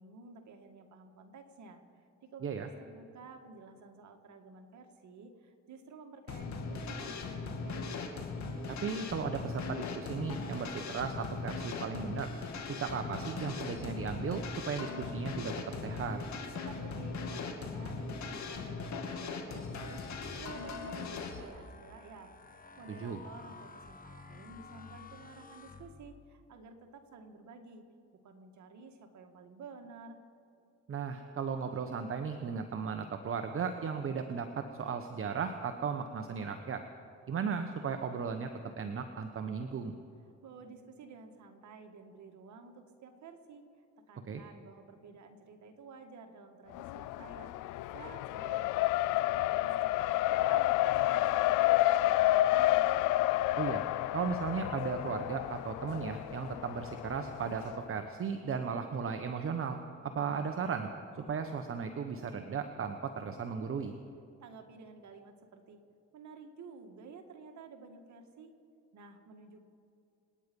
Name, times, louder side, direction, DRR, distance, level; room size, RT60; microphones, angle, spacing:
voice 1, 0.0-2.0 2.3-7.9 16.6-22.3 22.8-27.8 28.2-30.2 40.4-43.6 44.1-47.5 47.9-50.8 51.1-52.9 64.4-65.8 66.1-68.5 68.9-69.6, right 4 dB, 70° right, 5 dB, 1.9 m, -52 dB
sound 1, 6.3-21.4, left 4 dB, 65° left, 2.4 m, -39 dB
voice 2, 8.7-12.3 12.7-15.5 15.8-16.2 23.0-23.2 30.9-36.8 37.3-38.5 38.8-40.0 44.3-44.4 53.6-53.8 54.1-60.9 61.1-63.9, right 6 dB, 45° right, 6 dB, 1.1 m, -36 dB
sound 2, 20.0-26.4, left 4 dB, 30° left, 1.3 m, -53 dB
Race car auto racing, 46.7-57.8, left 15 dB, 90° left, 0.5 m, -30 dB
28.0 x 9.7 x 5.4 m, 2.6 s
cardioid pair, 90°, 30 cm